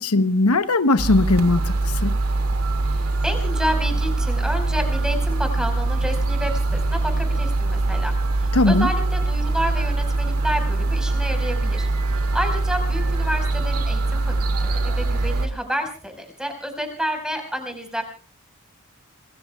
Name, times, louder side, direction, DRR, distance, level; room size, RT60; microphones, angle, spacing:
voice 1, 0.0-1.6 2.0-2.2 8.5-8.9, left 2 dB, 90° left, 0.9 m, -18 dB
sound 1, 1.0-15.5, right 2 dB, 80° right, 2.3 m, -23 dB
voice 2, 2.8-18.0, equal, 5° right, 4.8 m, -30 dB
26.5 x 21.0 x 2.3 m
head